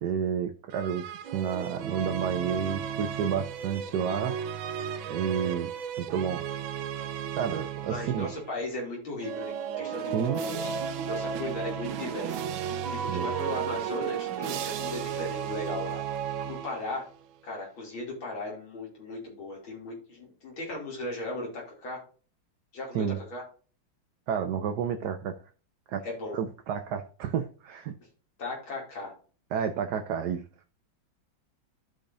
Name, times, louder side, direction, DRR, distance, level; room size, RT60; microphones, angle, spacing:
voice 1, 0.0-4.6 5.1-5.7 6.0-6.4 7.4-8.3 10.1-10.4 13.1-13.3 22.9-23.2 24.3-25.4 25.9-26.1 26.3-27.9 29.5-30.4, right 8 dB, 65° right, 6 dB, 1.2 m, -30 dB
sound 1, 0.7-8.6 9.2-17.1, right 8 dB, 85° right, 1.5 m, -34 dB
voice 2, 7.9-16.0 16.5-17.1 17.4-22.0 22.7-23.4 26.0-26.4 28.4-29.1, left 2 dB, 85° left, -2 dB, 3.5 m, -37 dB
14.5 x 5.1 x 2.6 m, 0.38 s
omnidirectional pair, 2.1 m